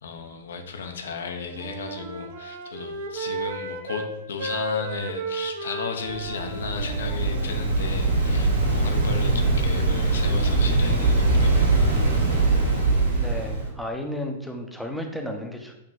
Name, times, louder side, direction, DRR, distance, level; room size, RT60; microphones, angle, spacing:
voice 1, 0.0-12.6 13.1-13.3, left 4 dB, 65° left, 5 dB, 0.5 m, -35 dB
Wind instrument woodwind instrument, 1.2-4.1 4.4-7.7, right 2 dB, 45° right, 0.6 m, -34 dB
Waves surf, 6.0-13.7, right 3 dB, 80° right, 1.4 m, -22 dB
voice 2, 13.1-15.7, left 1 dB, ahead, 2 dB, 0.6 m, -33 dB
6.3 x 2.9 x 2.5 m, 0.90 s
figure-of-eight pair, 105°, 0 cm